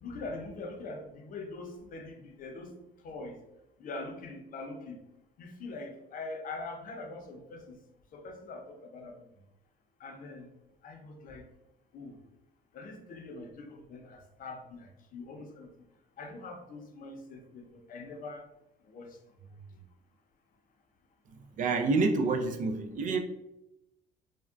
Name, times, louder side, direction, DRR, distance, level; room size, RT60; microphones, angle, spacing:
voice 1, 0.0-2.7 3.0-3.4 3.8-5.0 5.4-7.8 8.1-9.3 10.0-10.5 10.8-11.5 11.9-12.2 12.7-15.9 16.2-18.5 18.9-19.8, left 3 dB, 55° left, 3 dB, 0.6 m, -43 dB
voice 2, 21.6-23.2, right 3 dB, 50° right, 5 dB, 0.4 m, -27 dB
3.5 x 2.2 x 2.4 m, 0.88 s
cardioid pair, 110°, 17 cm